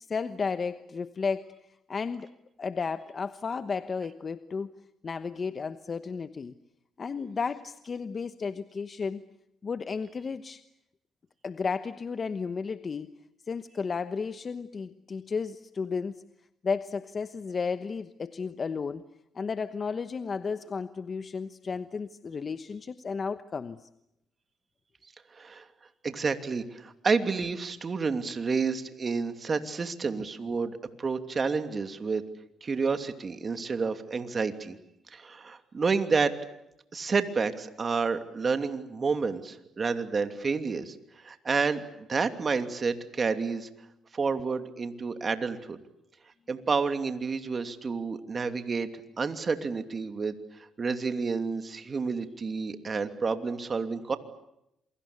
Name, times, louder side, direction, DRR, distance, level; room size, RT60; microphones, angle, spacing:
voice 1, 0.0-1.5 1.9-2.3 2.6-4.7 5.0-6.5 7.0-9.2 9.6-10.6 11.4-13.1 13.5-16.2 16.6-19.1 19.3-23.9, left 5 dB, 40° left, 11 dB, 1.1 m, -33 dB
voice 2, 25.3-25.6 26.0-32.2 32.6-34.8 35.1-36.3 36.9-40.9 41.2-43.7 44.1-45.8 46.5-48.9 49.2-50.3 50.8-54.2, right 4 dB, 35° right, 8 dB, 2.8 m, -29 dB
28.0 x 24.0 x 8.6 m, 0.83 s
cardioid pair, 90°, 0 cm